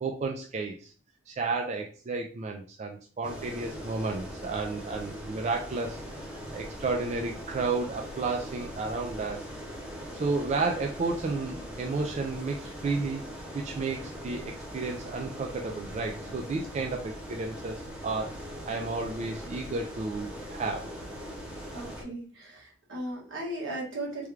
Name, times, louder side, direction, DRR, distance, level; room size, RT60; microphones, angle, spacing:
voice 1, 0.0-0.9 1.3-9.5 10.1-13.2 13.5-20.9, right 3 dB, 35° right, 1 dB, 0.3 m, -32 dB
sound 1, 3.2-22.0, equal, 5° right, 0.7 m, -41 dB
voice 2, 21.7-24.3, right 1 dB, 75° right, -3 dB, 1.3 m, -37 dB
3.3 x 2.3 x 3.1 m, 0.42 s
head